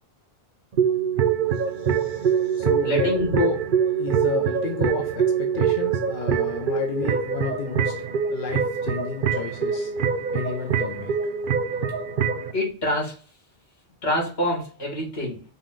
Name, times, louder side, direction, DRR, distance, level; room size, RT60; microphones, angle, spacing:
sound 1, 0.7-12.5, right 7 dB, 60° right, 0.7 m, -24 dB
voice 1, 1.8-3.6 4.0-7.9 8.3-9.9 10.3-11.1, left 6 dB, 60° left, 3 dB, 0.8 m, -31 dB
voice 2, 2.8-3.3 12.5-13.1 14.0-15.4, left 1 dB, 80° left, -1 dB, 2.0 m, -26 dB
5.3 x 2.3 x 3.8 m, 0.37 s
omnidirectional pair, 1.0 m